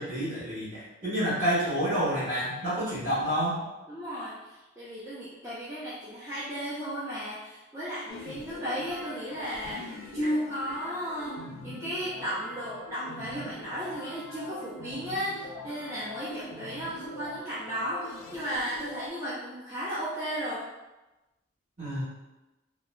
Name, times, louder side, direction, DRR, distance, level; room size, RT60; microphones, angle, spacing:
voice 1, 0.0-3.6 21.8-22.0, equal, 40° right, -11 dB, 1.5 m, -29 dB
voice 2, 3.9-4.3 4.8-20.6, equal, 15° right, -10 dB, 0.4 m, -34 dB
sound 1, 8.1-19.1, left 2 dB, 85° left, 0.4 m, -43 dB
2.9 x 2.1 x 2.3 m, 1.0 s
head